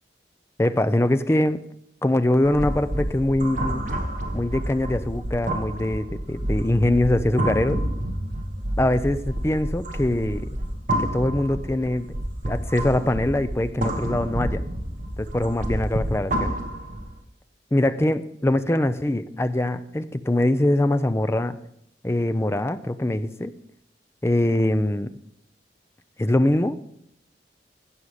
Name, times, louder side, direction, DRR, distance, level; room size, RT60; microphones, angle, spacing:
voice 1, 0.6-1.6 2.0-3.8 4.3-7.8 8.8-10.5 11.0-12.2 12.5-14.6 15.2-16.5 17.7-21.6 22.0-23.5 24.2-25.1 26.2-27.0, left 1 dB, 15° left, 11 dB, 0.5 m, -23 dB
sound 1, 2.4-17.2, right 1 dB, 45° right, 1.4 m, -29 dB
16.0 x 5.6 x 5.0 m, 0.73 s
head